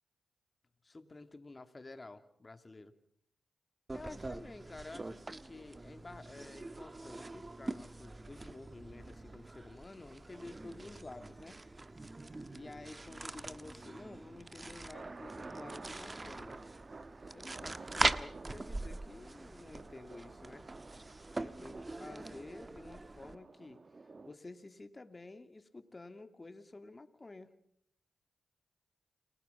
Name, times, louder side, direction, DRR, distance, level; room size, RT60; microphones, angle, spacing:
voice 1, 0.8-2.9 3.9-11.6 12.5-16.6 17.3-20.7 21.4-23.8 24.2-27.5, left 2 dB, 35° left, 8 dB, 2.6 m, -51 dB
sound 1, 3.9-23.4, right 2 dB, 30° right, 1.3 m, -42 dB
sound 2, 14.2-24.4, right 3 dB, 45° right, 1.6 m, -52 dB
29.5 x 20.5 x 5.8 m, 0.67 s
supercardioid pair, 40°, 0 cm